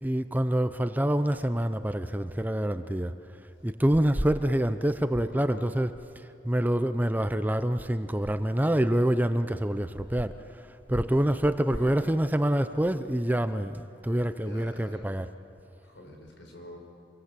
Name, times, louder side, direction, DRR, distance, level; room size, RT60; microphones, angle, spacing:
voice 1, 0.0-3.1 3.6-5.9 6.4-10.3 10.9-15.3, right 1 dB, 10° right, 10 dB, 0.6 m, -26 dB
voice 2, 5.3-5.7 11.7-12.0 14.4-15.1 15.8-16.8, left 1 dB, 85° left, 2 dB, 5.3 m, -47 dB
26.0 x 22.5 x 8.4 m, 2.5 s
head